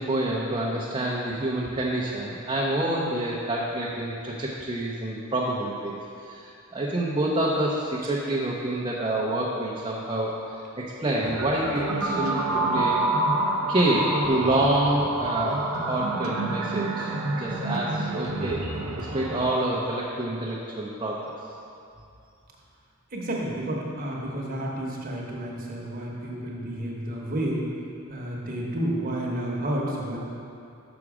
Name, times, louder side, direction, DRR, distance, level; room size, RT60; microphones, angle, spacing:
voice 1, 0.0-6.0 6.2-10.4 10.8-13.0 13.7-18.7 19.0-21.3, right 1 dB, 25° right, -4 dB, 0.6 m, -27 dB
sound 1, 11.1-19.5, right 2 dB, 70° right, 0.7 m, -28 dB
voice 2, 23.1-27.6 28.1-30.2, right 1 dB, 40° right, -3 dB, 1.1 m, -31 dB
6.1 x 6.0 x 4.8 m, 2.6 s
head